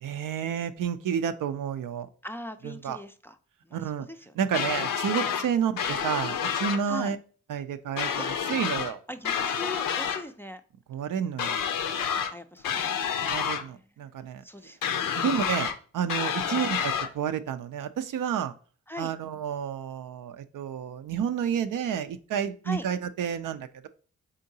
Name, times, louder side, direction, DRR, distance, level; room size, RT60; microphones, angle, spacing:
voice 1, 0.0-2.1 2.6-3.0 3.7-4.1 4.4-7.2 7.5-9.0 10.9-11.6 13.3-14.4 15.1-18.5 19.0-23.9, right 8 dB, 75° right, 10 dB, 0.5 m, -30 dB
voice 2, 2.2-3.4 3.6-4.8 6.9-7.1 8.2-8.3 9.1-10.6 12.3-13.9 14.4-15.2 18.9-19.1 22.6-22.9, left 1 dB, 5° left, 7 dB, 0.4 m, -41 dB
sound 1, 4.5-5.5 5.8-6.8 8.0-8.9 9.2-10.2 11.4-12.3 12.6-13.6 14.8-15.8 16.1-17.1, left 7 dB, 80° left, 0.5 m, -29 dB
3.8 x 3.7 x 2.7 m, 0.41 s
supercardioid pair, 45°, 33 cm